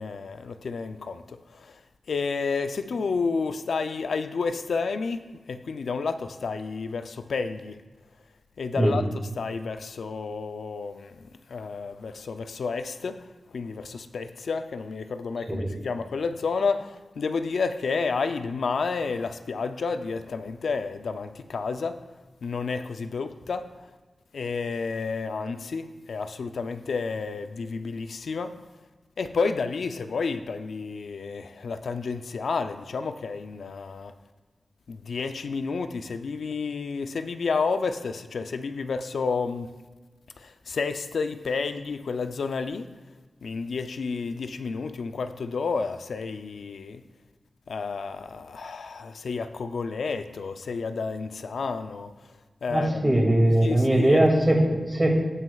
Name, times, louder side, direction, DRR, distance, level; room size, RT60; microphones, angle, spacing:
voice 1, 0.0-1.8 2.1-7.8 8.6-9.0 9.4-11.2 11.5-22.0 22.4-23.7 24.3-28.6 29.2-34.1 34.9-39.7 40.4-42.9 43.4-47.0 47.7-52.1 52.6-53.1 53.6-54.6, left 4 dB, 85° left, 0.4 m, -30 dB
voice 2, 52.7-55.1, right 1 dB, 20° right, 2.3 m, -21 dB
18.0 x 6.2 x 2.3 m
cardioid pair, 65°, 0 cm